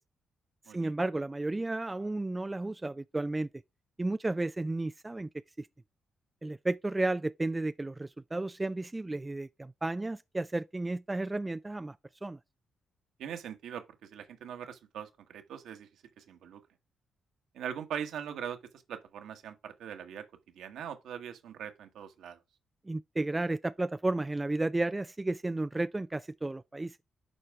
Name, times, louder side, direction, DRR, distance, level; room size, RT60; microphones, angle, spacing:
voice 1, 0.7-3.5 4.0-5.3 5.6-5.7 6.4-12.0 12.2-12.4 22.9-27.0, right 2 dB, 20° right, 0.4 m, -33 dB
voice 2, 13.2-15.9 16.2-16.6 17.5-20.2 20.5-22.4, right 8 dB, 70° right, 1.3 m, -41 dB
11.0 x 4.4 x 3.5 m
hypercardioid pair, 40°, 0 cm